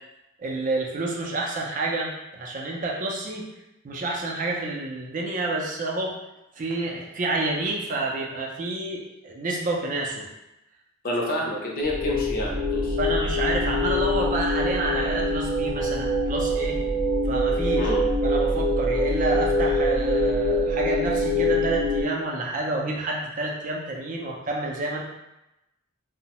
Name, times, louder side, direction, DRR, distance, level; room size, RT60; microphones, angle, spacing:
voice 1, 0.4-3.5 3.8-6.1 6.6-9.0 9.2-10.2 13.0-16.8 17.2-17.9 18.2-25.0, right 2 dB, 40° right, -1 dB, 0.4 m, -29 dB
voice 2, 11.0-13.0 17.8-18.0, left 1 dB, 45° left, -2 dB, 0.5 m, -28 dB
sound 1, 11.8-22.0, left 1 dB, 90° right, 0.6 m, -24 dB
2.6 x 2.0 x 2.9 m, 0.93 s
head